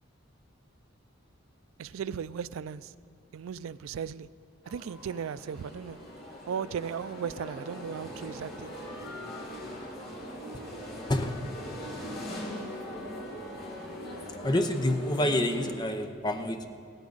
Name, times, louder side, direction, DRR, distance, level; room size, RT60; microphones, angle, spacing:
voice 1, 1.8-2.9 3.3-4.3 4.7-6.0 6.5-8.7, right 7 dB, 85° right, 0.3 m, -36 dB
sound 1, 4.6-15.7, equal, 50° left, 2.8 m, -41 dB
voice 2, 14.4-16.7, left 1 dB, 20° left, 0.7 m, -27 dB
16.0 x 14.5 x 4.0 m
head